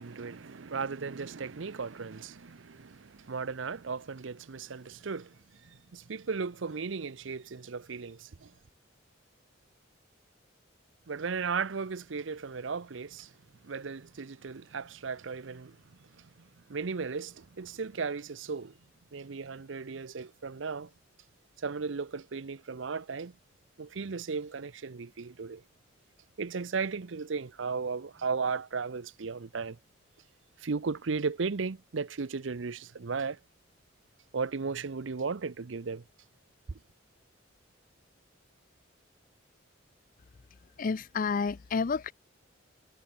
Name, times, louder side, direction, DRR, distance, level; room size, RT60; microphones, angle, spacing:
voice 1, 0.0-8.5 11.1-13.3 13.6-15.8 16.1-16.3 16.7-18.7 19.1-20.9 21.6-23.3 23.8-25.6 26.4-29.8 30.6-33.4 34.3-36.0 36.7-36.8, right 5 dB, 75° right, 0.7 m, -36 dB
voice 2, 40.8-42.1, left 5 dB, 45° left, 0.4 m, -30 dB
head